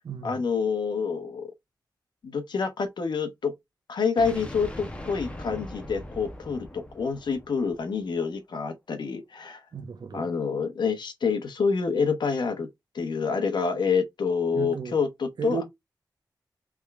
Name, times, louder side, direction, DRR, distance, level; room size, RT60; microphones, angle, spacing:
voice 1, 0.2-1.5 2.2-3.5 3.9-9.6 10.1-12.7 12.9-15.6, left 5 dB, 90° left, 1.0 m, -27 dB
sound 1, 4.2-8.1, left 1 dB, 15° left, 1.1 m, -40 dB
voice 2, 9.7-10.3 14.5-15.0 15.4-15.6, right 6 dB, 70° right, 0.9 m, -34 dB
3.6 x 3.3 x 3.5 m
wide cardioid pair, 105°, 7 cm